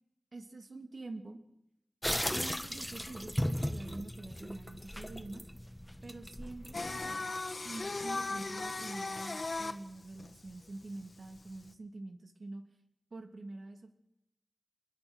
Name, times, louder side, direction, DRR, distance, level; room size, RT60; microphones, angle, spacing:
voice 1, 0.3-1.4 2.3-5.4 6.0-7.2 7.6-12.6 13.1-13.9, right 2 dB, 80° right, 5 dB, 2.9 m, -46 dB
sound 1, 2.0-7.1, equal, 5° left, 1.6 m, -37 dB
Singing, 6.7-11.7, left 3 dB, 65° left, 1.8 m, -38 dB
26.5 x 21.0 x 6.5 m, 0.85 s
wide cardioid pair, 60°, 0 cm